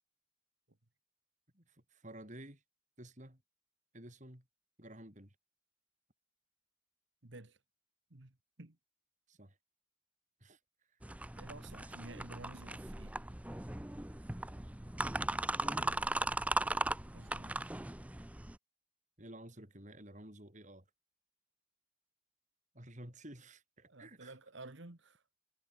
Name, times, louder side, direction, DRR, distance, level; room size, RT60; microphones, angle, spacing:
voice 1, 1.5-2.6 3.0-3.4 3.9-4.4 4.8-5.3 9.3-9.6 10.4-10.6 11.7-12.2 15.6-16.0 19.2-20.8 22.7-24.3, right 1 dB, 35° right, 6.1 m, -52 dB
voice 2, 7.2-7.6 8.1-8.8 11.4-13.2 17.1-17.5 23.9-25.2, right 2 dB, 65° right, 1.7 m, -52 dB
sound 1, 11.0-18.6, right 2 dB, 5° right, 0.6 m, -38 dB
head